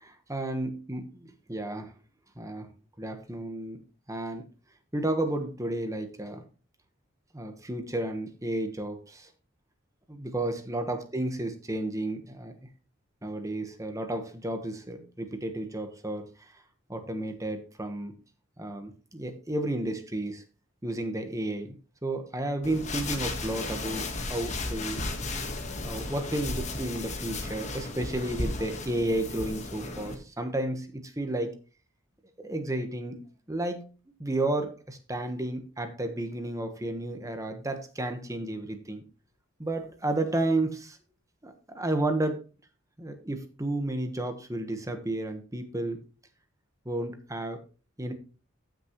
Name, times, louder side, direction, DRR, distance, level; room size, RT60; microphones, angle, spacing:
voice 1, 0.0-1.9 2.4-2.7 3.0-3.8 4.1-4.4 4.9-6.4 7.3-9.3 10.1-12.5 13.2-16.3 16.9-18.1 18.6-20.4 20.8-21.7 22.0-25.1 25.8-31.5 32.4-33.9 34.2-39.0 39.6-41.0 41.4-42.4 43.0-46.0 46.8-47.6 48.0-48.1, right 1 dB, 15° right, 7 dB, 1.2 m, -32 dB
sound 1, 22.6-30.1, left 2 dB, 35° left, 1.4 m, -34 dB
14.0 x 6.4 x 3.0 m, 0.35 s
head